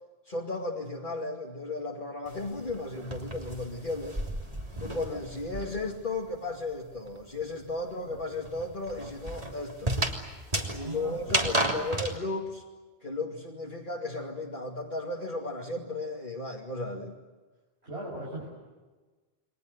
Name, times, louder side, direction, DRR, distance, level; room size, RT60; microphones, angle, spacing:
voice 1, 0.3-4.2 4.8-10.0 10.7-12.6 13.0-17.1, left 2 dB, 50° left, -3 dB, 2.6 m, -35 dB
sound 1, 2.3-6.0 6.3-12.2, right 1 dB, 35° right, 3.4 m, -33 dB
voice 2, 10.7-11.7 17.8-18.5, right 1 dB, 75° right, -4 dB, 6.9 m, -39 dB
29.5 x 23.0 x 8.1 m, 1.3 s
omnidirectional pair, 1.1 m